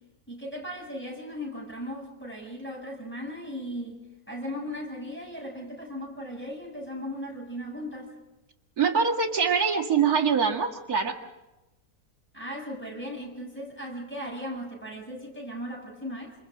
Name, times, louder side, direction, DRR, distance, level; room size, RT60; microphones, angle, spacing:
voice 1, 0.3-4.0 4.3-8.1 12.3-16.4, equal, 5° left, -3 dB, 7.9 m, -37 dB
voice 2, 8.8-11.2, right 6 dB, 70° right, 0 dB, 2.6 m, -24 dB
28.5 x 28.5 x 3.9 m, 1.0 s
omnidirectional pair, 1.7 m